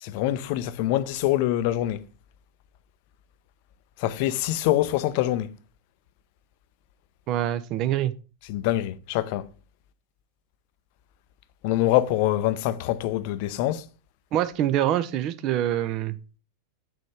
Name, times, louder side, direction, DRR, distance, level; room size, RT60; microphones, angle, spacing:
voice 1, 0.0-2.1 4.0-5.6 8.5-9.5 11.6-13.8, left 14 dB, 45° left, 0.5 m, -25 dB
voice 2, 7.3-8.1 14.3-16.2, right 12 dB, 40° right, 0.6 m, -25 dB
6.4 x 4.3 x 4.7 m
figure-of-eight pair, 90°, 0 cm